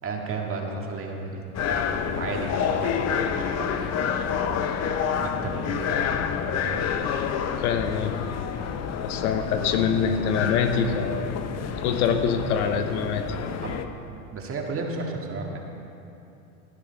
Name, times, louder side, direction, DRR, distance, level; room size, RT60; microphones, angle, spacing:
voice 1, 0.0-4.3 4.6-4.7 5.2-6.2 6.5-7.3 13.6-13.9 14.3-15.6, right 3 dB, 30° right, 0 dB, 2.0 m, -34 dB
sound 1, 1.5-13.8, left 7 dB, 35° left, 0.8 m, -28 dB
voice 2, 7.6-8.1 9.0-11.4 11.8-13.2, left 6 dB, 70° left, 7 dB, 1.1 m, -24 dB
16.5 x 10.5 x 4.0 m, 2.9 s
hypercardioid pair, 95°, 45 cm